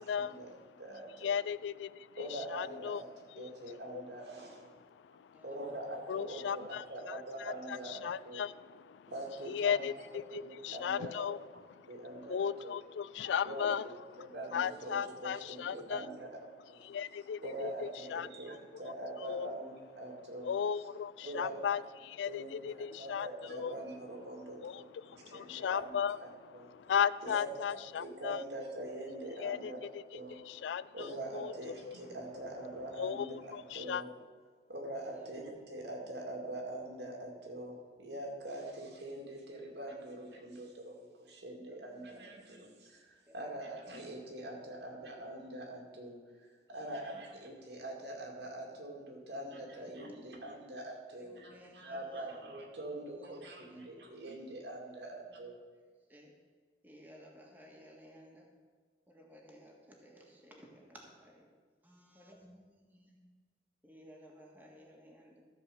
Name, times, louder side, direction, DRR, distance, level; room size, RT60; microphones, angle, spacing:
voice 1, 0.0-0.7 1.2-3.0 3.4-3.5 3.9-4.0 4.8-5.4 6.1-9.1 9.4-11.4 11.7-16.1 16.8-18.3 19.2-19.5 20.4-23.8 24.6-28.4 29.4-31.5 31.8-32.0 33.0-34.0, left 8 dB, 85° left, 18 dB, 0.3 m, -37 dB
voice 2, 0.8-1.3 2.2-3.1 3.4-4.8 5.4-8.4 9.1-9.9 10.3-11.3 11.9-12.7 13.4-13.7 14.2-16.3 16.7-16.8 17.4-20.5 21.2-21.8 22.3-26.3 26.5-26.7 27.2-29.8 30.1-30.4 30.9-34.1 34.7-46.2 46.7-55.6, right 1 dB, 75° right, 0 dB, 2.2 m, -44 dB
voice 3, 5.2-5.8 11.0-11.2 13.3-13.4 16.2-16.3 21.2-21.6 22.5-22.7 25.1-25.7 27.3-27.6 31.4-31.6 35.0-35.3 39.4-39.6 40.0-40.1 41.7-42.3 43.2-43.6 44.8-44.9 46.7-47.1 49.3-49.8 50.2-50.3 51.1-52.4 53.0-54.2 55.0-55.4 55.7-56.3 56.8-58.5 59.1-61.5 61.8-63.2 63.8-65.4, equal, 10° right, -1 dB, 1.6 m, -58 dB
14.0 x 4.9 x 6.9 m, 1.5 s
head